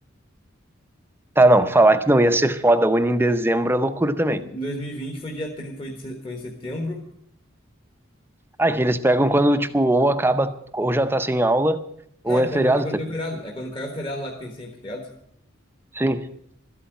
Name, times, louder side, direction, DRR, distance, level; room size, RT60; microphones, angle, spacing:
voice 1, 1.4-4.4 8.6-11.8 12.2-12.8 16.0-16.2, right 1 dB, 10° right, 10 dB, 0.6 m, -19 dB
voice 2, 4.3-7.1 12.2-15.1, equal, 25° left, 1 dB, 1.4 m, -32 dB
13.0 x 8.5 x 9.1 m, 0.75 s
head